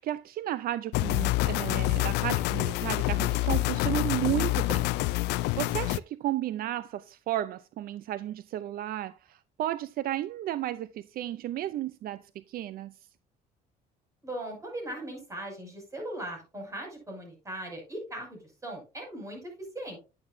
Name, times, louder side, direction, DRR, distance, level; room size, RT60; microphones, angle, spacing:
voice 1, 0.0-4.9 5.4-12.9, right 13 dB, 60° right, 0.5 m, -33 dB
sound 1, 0.9-6.0, left 20 dB, 90° left, 0.4 m, -27 dB
voice 2, 14.2-20.0, right 1 dB, 20° right, 6.4 m, -39 dB
11.0 x 8.7 x 2.7 m
cardioid pair, 110°, 17 cm